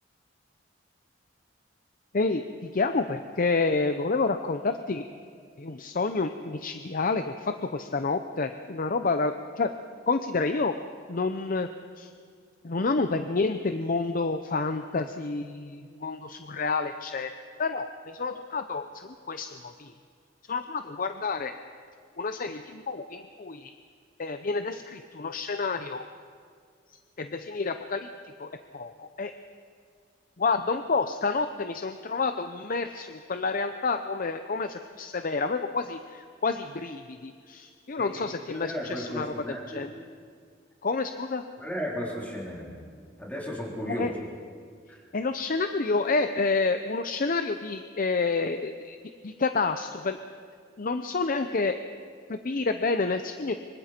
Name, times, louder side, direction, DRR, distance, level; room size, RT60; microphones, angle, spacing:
voice 1, 2.1-5.0 5.6-9.7 10.1-10.7 11.1-11.7 12.0-12.1 12.6-17.3 17.6-18.9 19.3-19.9 20.5-21.5 22.2-23.7 24.2-26.0 27.2-28.1 28.4-29.3 30.4-39.3 39.7-39.9 40.8-41.4 43.9-44.1 45.1-49.0 49.2-50.2 50.8-51.7 52.3-53.5, left 3 dB, 45° left, 8 dB, 0.7 m, -29 dB
voice 2, 38.0-39.9 41.6-42.8 43.2-44.1 44.9-45.0, equal, 10° left, -4 dB, 3.9 m, -35 dB
24.5 x 24.5 x 4.4 m, 2.1 s
head